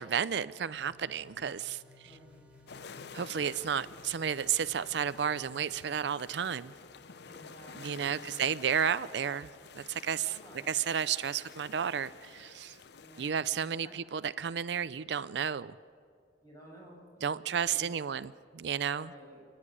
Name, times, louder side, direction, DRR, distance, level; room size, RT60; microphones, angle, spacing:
voice 1, 0.0-2.2 3.1-6.7 7.7-9.5 9.7-10.4 10.7-12.8 13.2-15.7 17.2-19.1, right 8 dB, 70° right, 16 dB, 0.5 m, -32 dB
sound 1, 0.7-5.9, left 2 dB, 5° right, 5.8 m, -58 dB
voice 2, 2.0-2.7 3.7-3.9 7.2-8.5 10.2-10.8 12.9-13.9 16.4-17.9 18.9-19.4, equal, 20° left, -3 dB, 7.6 m, -54 dB
sound 2, 2.7-13.3, left 5 dB, 65° left, 0.7 m, -51 dB
29.5 x 10.5 x 9.8 m, 2.2 s
head